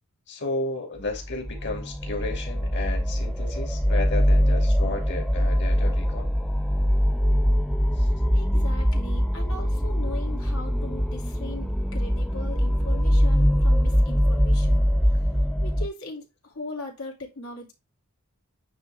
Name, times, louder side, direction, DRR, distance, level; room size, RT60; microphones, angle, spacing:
voice 1, 0.3-6.3 8.0-8.1, left 2 dB, 55° left, 2.5 m, -33 dB
sound 1, 1.1-15.9, equal, ahead, 0.5 m, -23 dB
voice 2, 8.3-14.9 15.6-17.7, left 2 dB, 75° left, 2.8 m, -39 dB
9.3 x 3.6 x 3.5 m
head